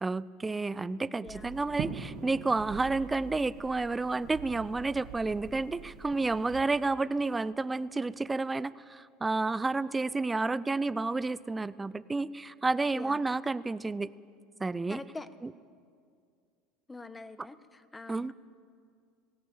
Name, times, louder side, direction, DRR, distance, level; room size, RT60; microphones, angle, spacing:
voice 1, 0.0-14.1 14.6-15.0 15.4-15.5 17.4-17.5 18.1-18.3, right 3 dB, 15° right, 18 dB, 0.6 m, -30 dB
voice 2, 1.2-1.6 12.9-13.2 14.9-15.3 16.9-18.3, left 3 dB, 15° left, 12 dB, 1.2 m, -44 dB
sound 1, 1.3-6.7, right 7 dB, 55° right, 1.8 m, -43 dB
19.0 x 17.5 x 8.1 m, 2.2 s
hypercardioid pair, 90°, 0 cm